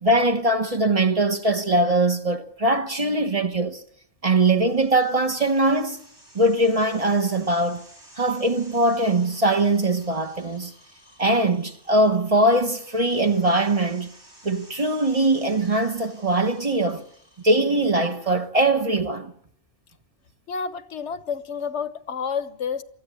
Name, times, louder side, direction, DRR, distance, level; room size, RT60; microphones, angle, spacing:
voice 1, 0.0-3.8 4.2-6.0 6.3-7.8 8.2-10.7 11.2-14.1 14.4-17.0 17.4-19.3, right 2 dB, 35° right, 1.1 m, -21 dB
sound 1, 4.3-18.1, right 1 dB, 85° right, 5.6 m, -52 dB
voice 2, 20.5-22.8, left 6 dB, 80° left, 1.3 m, -29 dB
23.5 x 14.0 x 8.4 m
omnidirectional pair, 1.1 m